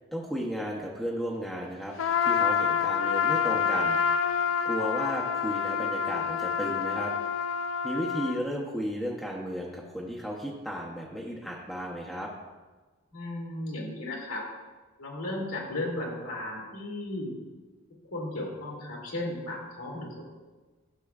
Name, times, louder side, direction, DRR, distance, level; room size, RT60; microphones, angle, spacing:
voice 1, 0.1-4.0 4.6-7.1 7.8-12.3, equal, ahead, -4 dB, 0.6 m, -34 dB
Trumpet, 2.0-8.4, left 7 dB, 65° left, 0.4 m, -27 dB
voice 2, 13.1-14.5 15.0-17.3 18.1-20.2, left 1 dB, 80° left, -3 dB, 2.2 m, -35 dB
11.5 x 6.6 x 2.4 m, 1.3 s
head